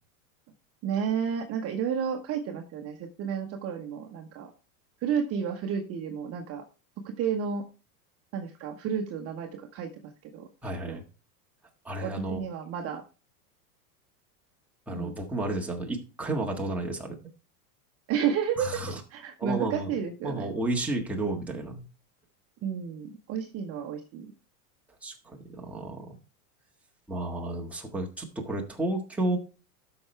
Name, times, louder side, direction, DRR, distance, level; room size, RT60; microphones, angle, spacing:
voice 1, 0.8-4.5 5.0-6.6 7.0-7.6 8.3-9.9 10.2-10.5 10.9-11.0 12.0-13.0 14.9-15.1 18.1-20.5 22.6-24.3, right 7 dB, 30° right, 3 dB, 1.1 m, -31 dB
voice 2, 10.6-11.0 11.8-12.4 14.9-17.2 18.6-19.0 19.4-19.9 20.2-21.8 25.0-26.2 27.1-29.4, right 2 dB, 5° right, -1 dB, 1.6 m, -32 dB
13.0 x 5.8 x 3.3 m, 0.33 s
supercardioid pair, 140°, 46 cm